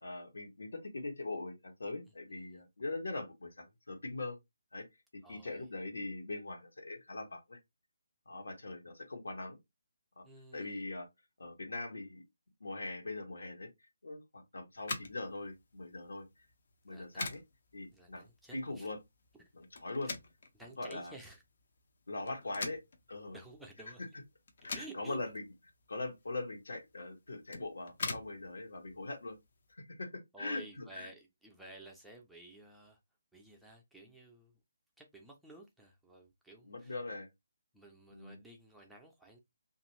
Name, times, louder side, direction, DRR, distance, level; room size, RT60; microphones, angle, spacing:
voice 1, 0.0-4.4 4.7-4.8 5.1-7.6 8.3-9.6 10.2-10.3 10.5-11.1 11.4-12.2 12.6-13.7 14.0-16.3 16.8-17.4 17.7-19.0 19.5-20.1 20.8-21.1 22.1-22.8 23.1-23.4 24.6-25.4 25.9-29.4 29.8-31.1 36.7-37.3 38.1-38.4, left 2 dB, 70° left, 1.1 m, -41 dB
voice 2, 5.2-5.7 10.2-10.8 16.9-17.3 17.9-18.9 20.0-20.1 20.5-21.4 23.3-24.0 24.7-25.2 30.3-33.0 33.3-34.6 35.0-37.0 37.7-39.4, right 2 dB, ahead, 0.6 m, -54 dB
sound 1, 14.7-29.7, left 3 dB, 50° left, 0.6 m, -46 dB
2.5 x 2.4 x 3.1 m
figure-of-eight pair, 145°, 0 cm